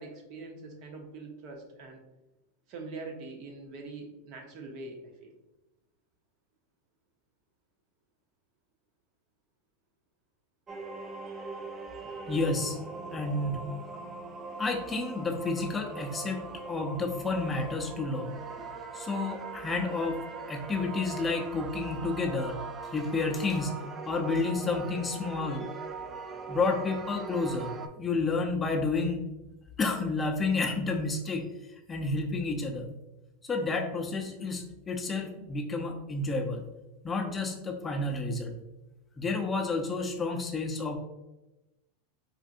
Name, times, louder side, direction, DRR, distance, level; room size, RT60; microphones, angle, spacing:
voice 1, 0.0-2.0 2.7-5.3, right 3 dB, 55° right, 2 dB, 0.8 m, -43 dB
sound 1, 10.7-27.9, right 4 dB, 25° right, 0.4 m, -41 dB
voice 2, 12.3-12.8 13.1-13.6 14.6-16.4 16.7-18.7 18.9-20.2 20.5-22.6 22.9-23.7 24.1-25.7 26.5-29.2 29.8-31.4 31.9-32.9 33.5-36.6 37.0-38.5 39.2-41.0, left 3 dB, 20° left, 2 dB, 0.6 m, -30 dB
4.4 x 2.5 x 2.5 m, 0.99 s
hypercardioid pair, 115°, 0 cm